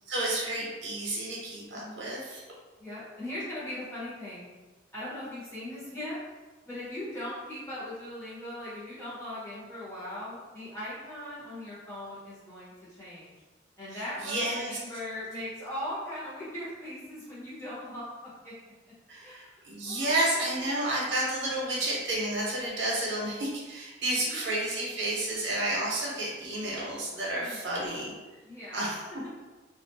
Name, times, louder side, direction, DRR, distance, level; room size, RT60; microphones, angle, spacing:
voice 1, 0.1-2.4 13.9-14.8 19.1-28.1 28.7-29.0, right 1 dB, 65° right, -5 dB, 0.8 m, -31 dB
voice 2, 1.7-2.1 2.8-4.4 4.9-6.2 6.6-12.7 13.0-13.4 13.8-18.1 18.4-18.5 19.2-20.2 20.5-20.6 24.2-24.5 27.4-27.6 28.4-28.9, left 1 dB, 15° left, -10 dB, 0.9 m, -39 dB
2.4 x 2.1 x 2.6 m, 1.3 s
head